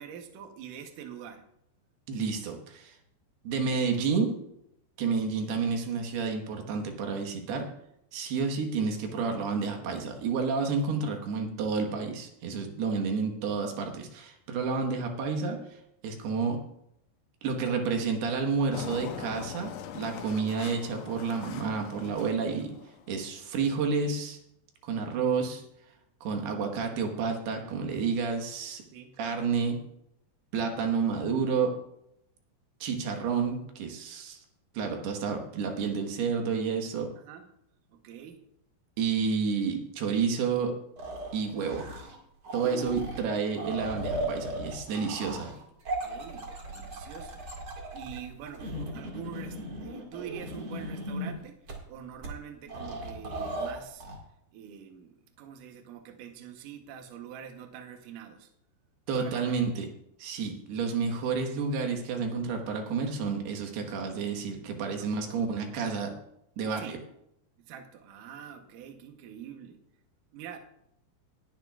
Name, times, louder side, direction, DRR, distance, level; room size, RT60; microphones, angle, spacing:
voice 1, 0.0-1.4 8.4-8.5 12.9-13.1 28.9-29.2 37.2-37.5 37.9-38.4 42.6-43.0 46.0-47.4 47.9-51.6 51.9-54.0 54.5-58.5 59.2-59.6 65.0-65.4 66.8-67.0 67.6-69.8 70.3-70.6, right 8 dB, 90° right, 5 dB, 1.8 m, -45 dB
voice 2, 2.1-3.0 3.4-4.3 5.0-7.7 8.1-16.6 17.4-22.8 23.1-24.4 24.8-25.6 26.2-28.8 29.2-29.8 30.5-31.8 32.8-34.4 34.7-37.1 39.0-40.7 41.3-41.9 42.5-45.5 59.1-59.9 60.2-66.2 66.6-67.0, right 5 dB, 70° right, 3 dB, 3.1 m, -30 dB
Engine, 18.7-23.2, left 9 dB, 80° left, 2.7 m, -42 dB
sound 1, 41.0-42.2 42.4-51.3 51.7-51.8 52.2-52.3 52.7-54.2, right 1 dB, 45° right, 1.7 m, -37 dB
19.5 x 10.5 x 2.4 m, 0.77 s
omnidirectional pair, 5.3 m